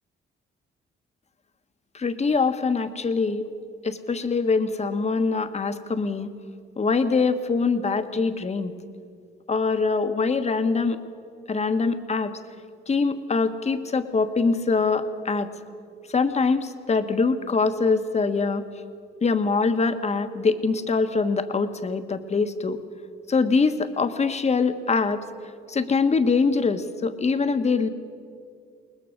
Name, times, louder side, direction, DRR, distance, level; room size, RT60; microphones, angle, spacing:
voice 1, 1.9-3.4 3.8-6.3 6.8-8.7 9.5-11.0 11.5-12.3 12.9-15.5 16.1-18.6 19.2-22.8 23.3-25.2 25.7-27.9, left 4 dB, 35° left, 9 dB, 1.3 m, -23 dB
21.5 x 19.5 x 6.6 m, 2.3 s
cardioid pair, 90°, 20 cm